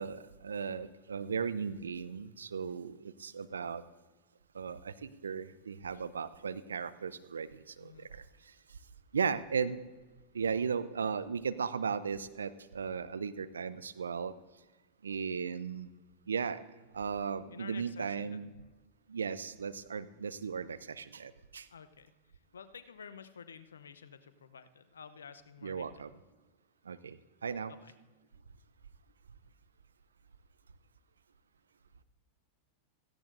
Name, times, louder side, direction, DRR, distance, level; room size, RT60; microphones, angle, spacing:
voice 1, 0.0-3.8 4.5-8.2 9.1-9.8 10.3-14.3 15.0-15.9 16.3-16.6 16.9-18.5 19.1-21.7 25.6-26.1 26.9-27.7, right 6 dB, 80° right, 15 dB, 0.5 m, -36 dB
voice 2, 17.5-18.4 21.7-22.1 22.5-26.0 27.7-27.9, left 6 dB, 80° left, 12 dB, 0.7 m, -51 dB
16.5 x 15.0 x 2.6 m, 1.3 s
figure-of-eight pair, 90°, 0 cm